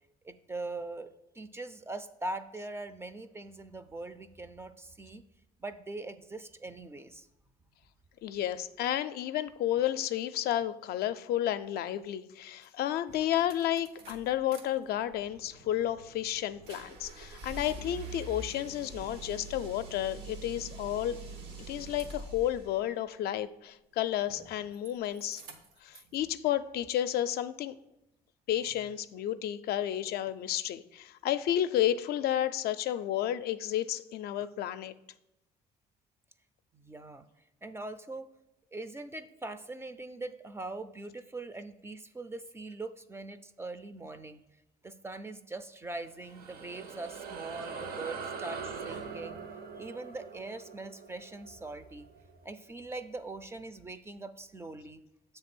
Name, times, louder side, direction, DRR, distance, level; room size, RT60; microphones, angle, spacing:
voice 1, 0.2-5.2 5.6-7.3 26.1-26.2 36.7-37.3 37.6-38.3 38.7-44.4 44.8-49.4 49.8-52.1 52.4-55.0, right 2 dB, 15° right, 10 dB, 0.4 m, -42 dB
voice 2, 8.2-21.2 21.7-25.4 25.8-27.7 28.5-34.9, left 12 dB, 65° left, 11 dB, 0.4 m, -31 dB
sound 1, 12.6-12.7 13.1-14.6 15.0-22.7 24.2-24.9 25.2-26.1, right 3 dB, 85° right, 1.0 m, -45 dB
sound 2, 46.0-52.9, right 5 dB, 65° right, 0.7 m, -43 dB
7.3 x 3.3 x 6.0 m, 0.88 s
cardioid pair, 110°, 17 cm